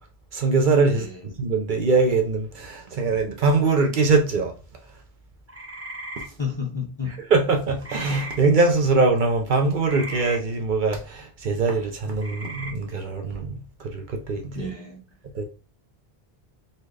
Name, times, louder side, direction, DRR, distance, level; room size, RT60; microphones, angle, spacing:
voice 1, 0.3-4.6 6.2-6.3 7.3-14.7 15.3-15.4, right 3 dB, 55° right, 0.7 m, -22 dB
voice 2, 0.9-1.2 6.4-7.2 14.5-15.0, left 5 dB, 35° left, 0.5 m, -31 dB
sound 1, 5.5-6.3 7.8-8.4 9.8-10.4 12.2-12.7, right 1 dB, 15° right, 0.9 m, -36 dB
4.1 x 2.2 x 3.2 m
omnidirectional pair, 1.1 m